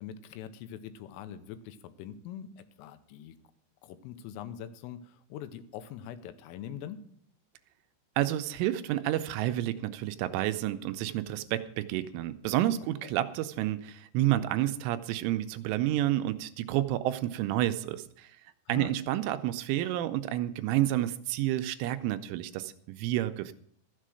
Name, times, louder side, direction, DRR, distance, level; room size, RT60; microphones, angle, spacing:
voice 1, 0.0-3.4 3.8-7.0 13.0-13.1 18.7-18.9, left 9 dB, 90° left, 11 dB, 3.4 m, -43 dB
voice 2, 8.2-18.4 18.7-23.5, right 14 dB, 85° right, 10 dB, 3.0 m, -30 dB
13.5 x 7.5 x 6.3 m, 0.67 s
omnidirectional pair, 5.7 m